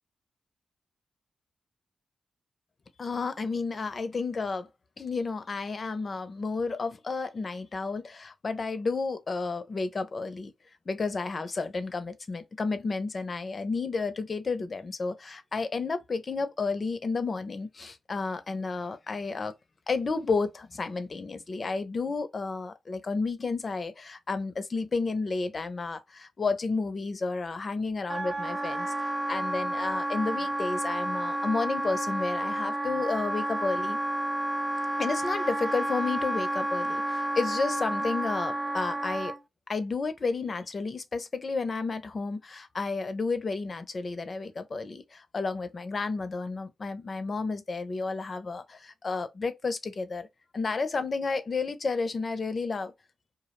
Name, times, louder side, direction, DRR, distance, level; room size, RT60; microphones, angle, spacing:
voice 1, 3.0-4.7 5.0-10.5 10.9-19.5 19.9-34.0 35.0-39.3 39.7-50.3 50.5-52.9, left 4 dB, 50° left, 0.5 m, -31 dB
Wind instrument woodwind instrument, 28.1-39.4, right 1 dB, 10° right, 0.4 m, -31 dB
2.3 x 2.0 x 2.9 m
supercardioid pair, 50°, 0 cm